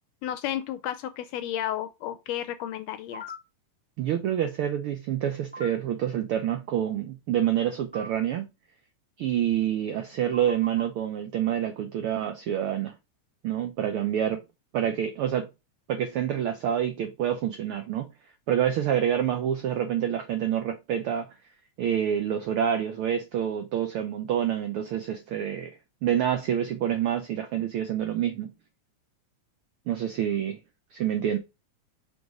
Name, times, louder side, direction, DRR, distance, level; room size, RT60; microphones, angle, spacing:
voice 1, 0.2-3.2, left 11 dB, 80° left, 1.6 m, -32 dB
sound 1, 3.1-3.4 5.5-5.7 7.9-8.1 10.3-10.9, left 1 dB, 5° left, 1.4 m, -39 dB
voice 2, 4.0-8.5 9.2-12.9 13.4-14.4 14.7-15.5 15.9-18.1 18.5-21.3 21.8-25.7 26.0-28.5 29.9-30.6 30.9-31.4, right 10 dB, 85° right, 1.2 m, -27 dB
5.3 x 3.9 x 4.5 m
omnidirectional pair, 3.4 m